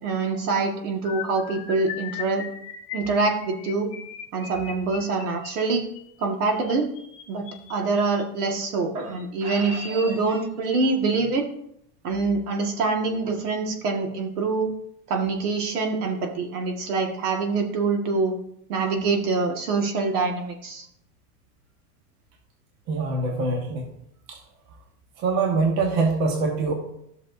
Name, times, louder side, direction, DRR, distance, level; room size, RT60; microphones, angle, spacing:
voice 1, 0.0-2.4 2.9-3.9 4.3-5.8 6.2-6.9 7.3-11.4 12.0-14.7 15.1-18.3 18.7-20.9, right 4 dB, 65° right, 2 dB, 1.9 m, -25 dB
sound 1, 1.0-8.2 9.0-9.2 9.5-9.7 10.0-10.2, left 9 dB, 25° left, 1.0 m, -39 dB
voice 2, 22.9-23.8 24.3-24.4 25.2-26.7, right 3 dB, 40° right, 1 dB, 1.3 m, -23 dB
13.5 x 6.3 x 2.7 m, 0.74 s
supercardioid pair, 175°, 48 cm